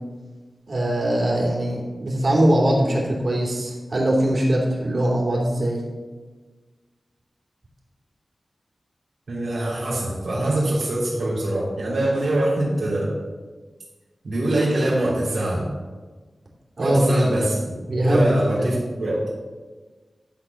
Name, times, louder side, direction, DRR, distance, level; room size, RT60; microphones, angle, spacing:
voice 1, 0.7-5.8 16.8-17.3 17.9-18.8, right 1 dB, 55° right, -3 dB, 3.0 m, -21 dB
voice 2, 9.3-13.1 14.2-15.7 16.8-17.6 17.9-19.2, right 1 dB, 85° right, -7 dB, 3.3 m, -23 dB
12.0 x 4.2 x 6.9 m, 1.3 s
wide cardioid pair, 105°, 0 cm